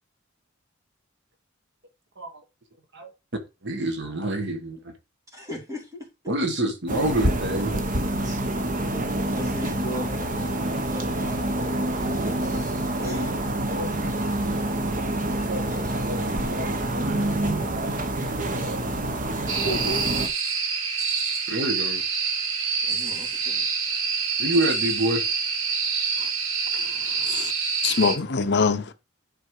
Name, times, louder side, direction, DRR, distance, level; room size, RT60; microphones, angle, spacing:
voice 1, 3.6-4.9 6.3-7.8 8.2-8.4 21.5-22.0 24.4-25.2, right 1 dB, 55° right, 1.5 m, -26 dB
voice 2, 5.3-6.1 9.3-11.5 11.9-12.1 12.4-13.4 15.6-16.8 19.5-20.1 22.8-23.7, equal, 15° right, 3.3 m, -38 dB
sound 1, 6.9-20.3, right 1 dB, 40° right, 1.1 m, -27 dB
sound 2, 19.5-28.2, right 5 dB, 75° right, 1.6 m, -26 dB
voice 3, 26.7-27.5 27.8-28.9, left 5 dB, 55° left, 0.8 m, -25 dB
11.0 x 4.4 x 4.8 m
head